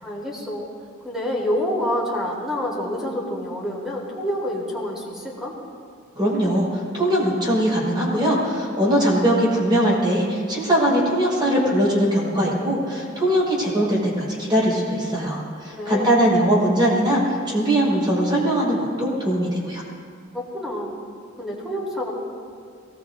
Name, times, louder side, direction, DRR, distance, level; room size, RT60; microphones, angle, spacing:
voice 1, 0.0-0.7 1.0-5.6 15.7-16.2 20.3-20.9 21.4-22.1, left 1 dB, ahead, -5 dB, 3.9 m, -27 dB
voice 2, 6.2-19.8, right 1 dB, 20° right, -5 dB, 5.3 m, -21 dB
23.0 x 19.0 x 2.8 m, 2.2 s
head